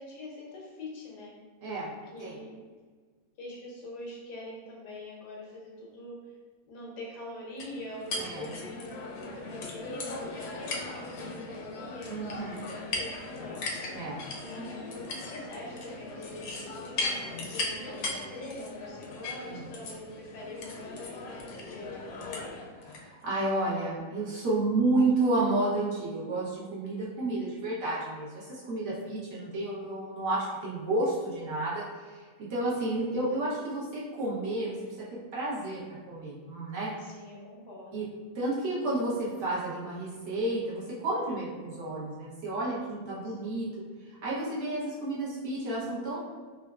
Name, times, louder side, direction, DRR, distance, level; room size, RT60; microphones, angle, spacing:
voice 1, 0.0-1.4 2.1-2.5 3.4-6.4 6.7-10.7 11.0-13.6 14.4-22.5 37.0-38.0 43.2-43.8, left 1 dB, 90° left, -3 dB, 1.4 m, -44 dB
sound 1, 7.6-23.0, left 2 dB, 70° left, 1.0 m, -38 dB
voice 2, 8.2-8.5 12.1-12.6 13.9-14.2 14.5-14.6 19.5-19.6 22.9-32.2 32.5-35.1 35.3-35.8 36.1-36.9 37.9-38.0 38.3-43.7 44.1-46.2, right 2 dB, 85° right, -7 dB, 1.7 m, -31 dB
4.3 x 2.3 x 2.4 m, 1.5 s
omnidirectional pair, 1.7 m